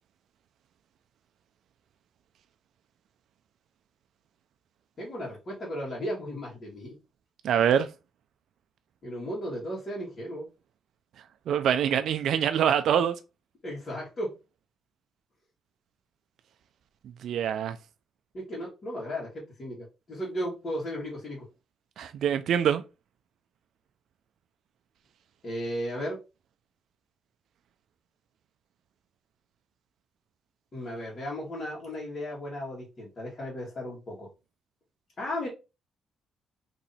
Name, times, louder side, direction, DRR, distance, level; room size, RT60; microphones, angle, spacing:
voice 1, 5.0-7.0 9.0-10.5 13.6-14.3 18.3-21.5 25.4-26.2 30.7-34.3 35.2-35.5, equal, 40° left, 1.6 m, -35 dB
voice 2, 7.4-7.9 11.5-13.1 17.2-17.8 22.0-22.8, right 9 dB, 70° right, 0.3 m, -24 dB
3.0 x 2.7 x 4.0 m
cardioid pair, 90°, 0 cm